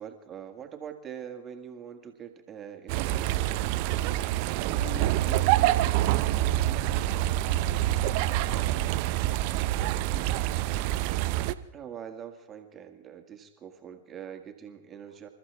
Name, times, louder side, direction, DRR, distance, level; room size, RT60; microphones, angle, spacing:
voice 1, 0.0-4.0 11.7-15.3, right 8 dB, 25° right, 4 dB, 1.9 m, -43 dB
sound 1, 2.9-11.5, right 14 dB, 50° right, 0.7 m, -26 dB
voice 2, 4.3-9.2 9.8-10.9 14.2-14.4 15.1-15.2, left 5 dB, 55° left, 4 dB, 3.0 m, -49 dB
27.5 x 14.0 x 3.5 m, 0.76 s
hypercardioid pair, 100°, 0 cm